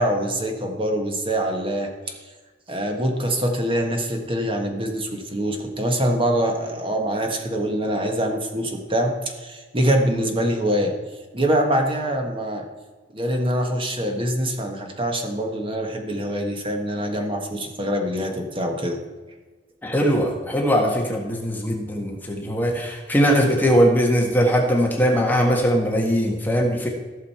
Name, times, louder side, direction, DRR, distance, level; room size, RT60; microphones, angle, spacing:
voice 1, 0.0-1.9 2.7-9.1 9.4-10.9 11.3-12.7 13.1-19.0, right 1 dB, 30° right, 3 dB, 1.5 m, -24 dB
voice 2, 19.8-26.9, equal, 10° left, 0 dB, 1.4 m, -20 dB
15.0 x 6.5 x 4.3 m, 1.3 s
head